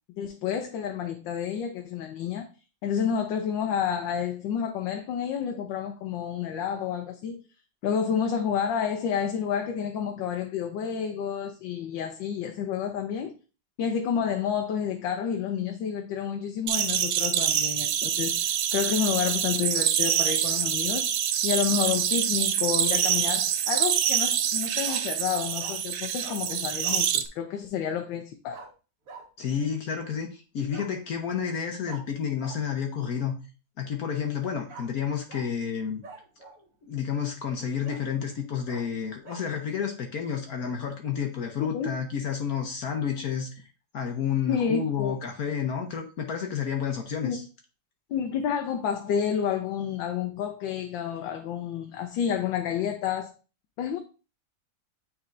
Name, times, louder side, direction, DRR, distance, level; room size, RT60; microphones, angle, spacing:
voice 1, 0.2-2.4 2.8-7.4 7.8-13.3 13.8-21.1 21.4-28.6 41.7-41.9 44.5-45.1 47.2-47.4 48.1-53.3 53.8-54.0, left 8 dB, 80° left, 1.4 m, -29 dB
sound 1, 16.7-27.2, right 10 dB, 85° right, 1.4 m, -26 dB
Bark, 23.1-23.5 24.8-25.0 25.6-25.8 26.2-26.4 26.8-27.1 28.5-28.7 29.1-29.2 30.7-30.9 31.9-32.0 32.4-32.6 34.7-34.9 35.3-35.5 36.0-36.7 37.2-37.3 37.8-38.0 38.7-38.8 39.2-39.4, right 3 dB, 50° right, 1.6 m, -44 dB
voice 2, 29.4-33.3 33.8-36.0 36.8-43.6 43.9-47.4, left 7 dB, 60° left, 1.2 m, -30 dB
8.8 x 4.3 x 2.5 m
omnidirectional pair, 2.0 m